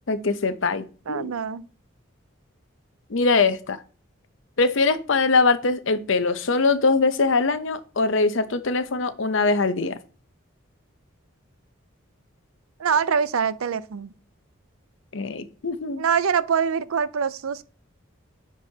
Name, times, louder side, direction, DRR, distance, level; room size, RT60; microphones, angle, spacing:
voice 1, 0.1-1.3 3.1-3.8 4.6-10.0 15.1-16.0, left 3 dB, 65° left, 0.7 m, -22 dB
voice 2, 1.1-1.7 12.8-14.1 16.0-17.6, right 6 dB, 85° right, 0.5 m, -24 dB
9.9 x 6.1 x 2.8 m
head